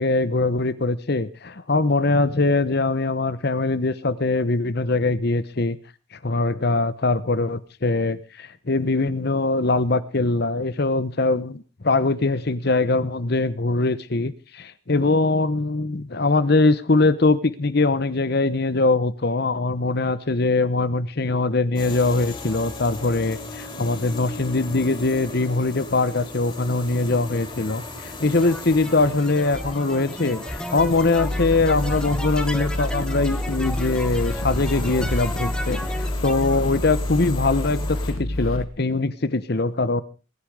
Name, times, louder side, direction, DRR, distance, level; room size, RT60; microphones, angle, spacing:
voice 1, 0.0-5.8 6.1-40.0, left 3 dB, 50° left, 16 dB, 0.9 m, -22 dB
sound 1, 21.7-38.1, left 3 dB, 25° left, 4.7 m, -37 dB
sound 2, 28.4-36.6, equal, 5° left, 1.0 m, -34 dB
sound 3, 31.1-38.6, left 1 dB, 85° left, 1.8 m, -28 dB
22.0 x 10.5 x 4.8 m, 0.35 s
head